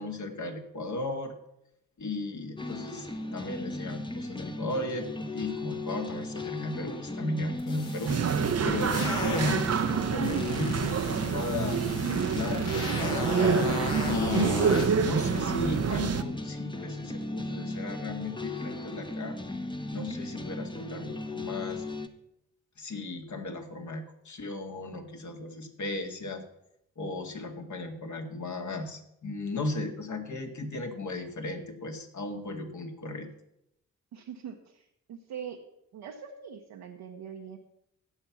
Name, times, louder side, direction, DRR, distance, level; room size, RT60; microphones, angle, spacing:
voice 1, 0.0-1.3 2.0-5.1 5.3-11.8 12.3-13.6 14.1-19.4 19.9-21.8 22.8-26.4 27.0-33.3, left 2 dB, 50° left, 4 dB, 2.2 m, -35 dB
sound 1, 2.6-22.1, left 2 dB, 10° left, 1.2 m, -37 dB
sound 2, 7.6-9.8 10.2-14.9, left 2 dB, 75° left, 3.4 m, -36 dB
sound 3, 8.1-16.2, right 6 dB, 40° right, 0.9 m, -27 dB
voice 2, 34.1-35.6 35.9-37.6, right 7 dB, 65° right, 1 dB, 1.2 m, -42 dB
16.0 x 5.9 x 5.9 m, 0.80 s
hypercardioid pair, 40°, 38 cm